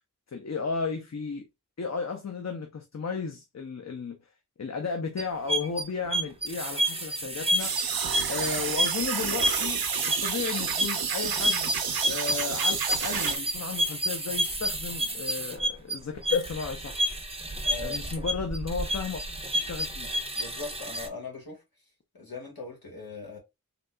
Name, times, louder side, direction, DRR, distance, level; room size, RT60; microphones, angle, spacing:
voice 1, 0.3-1.5 1.8-4.2 4.6-7.7 8.3-9.8 10.2-11.7 12.0-17.0 17.8-19.2 19.5-20.1, left 5 dB, 50° left, 0.5 m, -34 dB
sound 1, 5.2-21.1, equal, 15° right, 0.6 m, -30 dB
sound 2, 7.6-13.4, right 7 dB, 85° right, 0.5 m, -30 dB
voice 2, 17.6-18.1 20.3-21.6 22.1-23.4, left 3 dB, 75° left, 1.5 m, -40 dB
3.6 x 2.8 x 2.2 m
wide cardioid pair, 50°, 36 cm